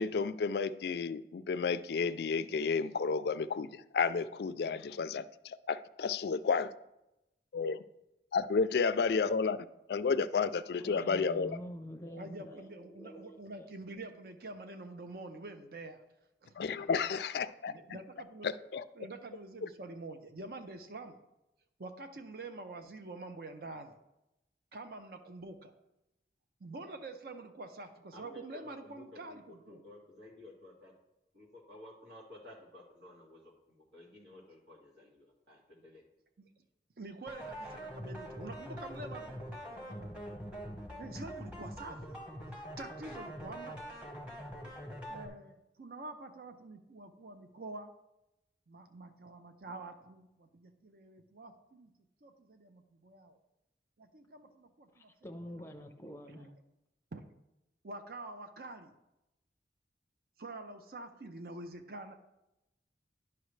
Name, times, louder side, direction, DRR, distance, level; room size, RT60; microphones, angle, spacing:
voice 1, 0.0-5.2 5.7-6.7 7.5-7.8 8.3-9.6 9.9-11.6 16.6-18.0 18.4-18.8 19.6-19.7, left 5 dB, 65° left, 13 dB, 0.3 m, -31 dB
voice 2, 10.8-13.7 54.9-56.6, equal, 15° left, 5 dB, 0.6 m, -47 dB
voice 3, 12.1-16.0 16.4-16.9 17.7-18.5 18.9-21.2 21.8-24.0 24.7-25.7 26.6-29.8 36.4-36.5 37.0-40.1 41.0-42.2 42.6-43.8 45.1-47.9 48.7-51.9 52.2-53.4 54.0-55.1 56.4-56.5 57.1-57.2 57.8-58.9 60.4-62.2, right 2 dB, 55° right, 7 dB, 0.6 m, -47 dB
voice 4, 28.1-29.4 29.7-30.9 31.3-36.0, left 1 dB, 85° right, -4 dB, 2.2 m, -54 dB
sound 1, 37.3-45.3, equal, 5° right, 1.1 m, -44 dB
10.0 x 5.8 x 3.2 m, 0.91 s
head